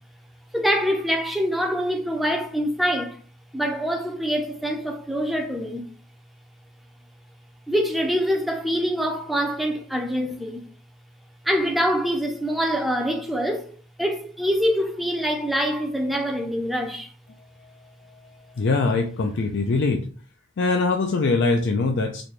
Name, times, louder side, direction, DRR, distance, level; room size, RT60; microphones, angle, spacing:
voice 1, 0.5-3.2 3.5-5.8 7.7-10.7 11.4-13.7 14.0-17.1, equal, ahead, 0.6 m, -25 dB
voice 2, 18.6-20.1 20.6-22.2, left 3 dB, 60° left, 0.4 m, -22 dB
4.1 x 2.2 x 3.1 m
head